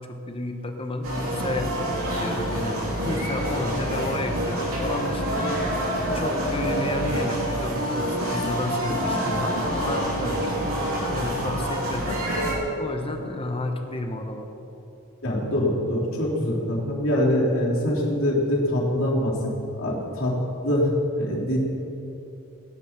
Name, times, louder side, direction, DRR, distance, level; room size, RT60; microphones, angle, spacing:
voice 1, 0.0-1.7 2.1-5.6 6.1-10.4 11.1-12.2 12.8-14.5, left 1 dB, 25° left, 5 dB, 1.2 m, -31 dB
sound 1, 1.0-12.6, equal, 70° right, 3.6 m, -27 dB
voice 2, 15.2-19.3 19.7-20.3 20.6-20.9 21.2-21.6, left 1 dB, 65° left, -7 dB, 3.6 m, -24 dB
17.0 x 11.0 x 6.0 m, 2.9 s
head